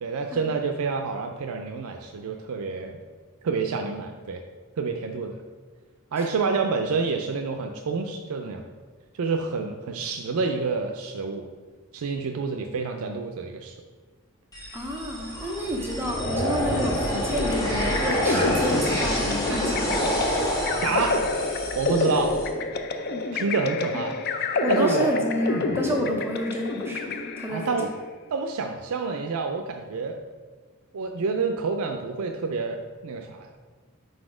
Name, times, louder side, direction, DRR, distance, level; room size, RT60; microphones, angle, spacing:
voice 1, 0.0-3.0 3.4-4.4 4.8-5.4 6.1-8.6 9.1-11.5 11.9-13.7 20.8-21.2 21.8-22.4 23.3-24.1 24.7-25.1 27.5-27.9 28.3-30.2 30.9-33.5, right 4 dB, 75° right, 4 dB, 0.4 m, -28 dB
sound 1, 14.5-22.5, equal, 15° left, 1.2 m, -28 dB
voice 2, 14.7-20.2 23.8-23.9 24.6-27.9, equal, 10° right, 0 dB, 0.6 m, -30 dB
sound 2, 17.4-27.8, left 3 dB, 45° left, 0.4 m, -28 dB
4.8 x 4.1 x 4.9 m, 1.4 s
head